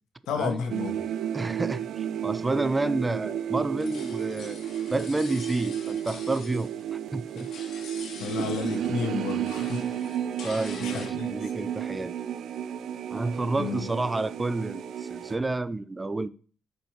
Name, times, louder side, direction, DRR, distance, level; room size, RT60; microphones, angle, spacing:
voice 1, 0.3-1.0 8.2-9.9 10.4-10.5 10.8-11.3 13.5-13.9, left 5 dB, 85° left, 1.4 m, -32 dB
sound 1, 0.7-15.4, right 10 dB, 70° right, 0.6 m, -33 dB
voice 2, 1.3-4.6 4.9-7.5 8.4-8.5 10.4-12.1 13.1-16.3, right 2 dB, 20° right, 0.5 m, -30 dB
sound 2, 3.6-7.0 7.2-9.0 9.3-11.1, left 5 dB, 70° left, 2.0 m, -45 dB
8.6 x 5.3 x 4.5 m
cardioid pair, 90°, 0 cm